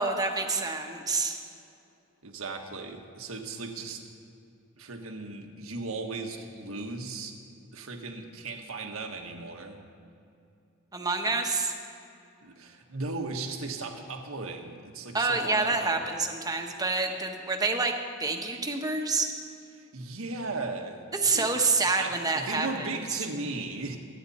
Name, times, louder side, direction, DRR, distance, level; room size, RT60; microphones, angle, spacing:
voice 1, 0.0-1.4 10.9-11.7 15.1-19.3 21.2-22.9, right 3 dB, 20° right, 3 dB, 1.1 m, -27 dB
voice 2, 2.2-4.1 4.8-7.4 7.7-9.8 12.4-16.1 19.7-21.0 21.3-21.5 22.0-24.0, right 3 dB, 80° right, 3 dB, 1.5 m, -37 dB
26.5 x 9.7 x 4.3 m, 2.6 s
head